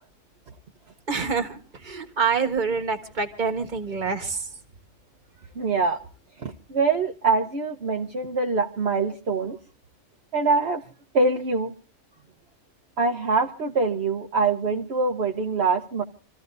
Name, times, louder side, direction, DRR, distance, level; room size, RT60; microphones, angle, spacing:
voice 1, 1.1-1.6 1.8-4.4, right 5 dB, 40° right, 6 dB, 1.6 m, -26 dB
voice 2, 5.6-6.0 6.4-9.6 10.3-10.8 11.1-11.7 13.0-16.0, right 4 dB, 55° right, 2 dB, 1.2 m, -24 dB
27.5 x 14.5 x 2.6 m, 0.37 s
omnidirectional pair, 1.3 m